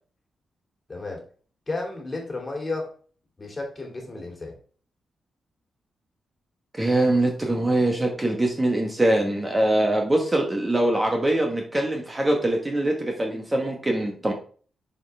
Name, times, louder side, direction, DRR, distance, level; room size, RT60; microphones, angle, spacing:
voice 1, 0.9-1.2 1.7-2.9 3.4-4.5, left 2 dB, 30° left, 0 dB, 2.6 m, -32 dB
voice 2, 6.8-14.3, right 1 dB, 20° right, 1 dB, 1.2 m, -23 dB
6.8 x 5.4 x 3.3 m, 0.43 s
cardioid pair, 90°, 0 cm